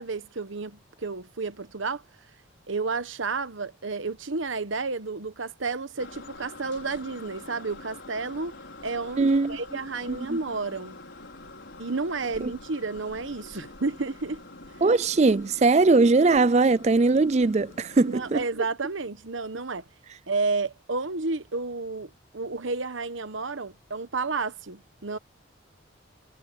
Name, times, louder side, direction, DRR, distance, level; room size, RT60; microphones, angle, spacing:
voice 1, 0.0-2.0 2.7-8.5 8.8-11.0 11.8-14.4 18.1-19.8 20.3-25.2, right 3 dB, 75° right, 1.1 m, -31 dB
sound 1, 6.0-18.4, left 2 dB, 65° left, 5.4 m, -46 dB
voice 2, 9.2-9.6 10.1-10.4 12.4-12.5 14.8-18.4, right 3 dB, 35° right, 0.4 m, -20 dB
head